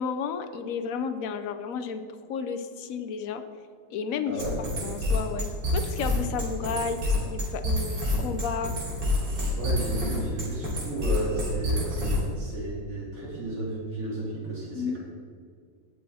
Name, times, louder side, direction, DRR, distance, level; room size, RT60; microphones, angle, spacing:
voice 1, 0.0-2.0 2.3-3.4 3.9-4.4 4.8-8.7 14.7-15.0, left 6 dB, 60° left, 8 dB, 1.0 m, -32 dB
voice 2, 4.3-4.6 9.6-15.0, right 2 dB, 45° right, -7 dB, 3.3 m, -33 dB
sound 1, 4.4-12.4, left 1 dB, 70° right, 3.5 m, -28 dB
18.0 x 6.3 x 4.2 m, 2.1 s
omnidirectional pair, 2.0 m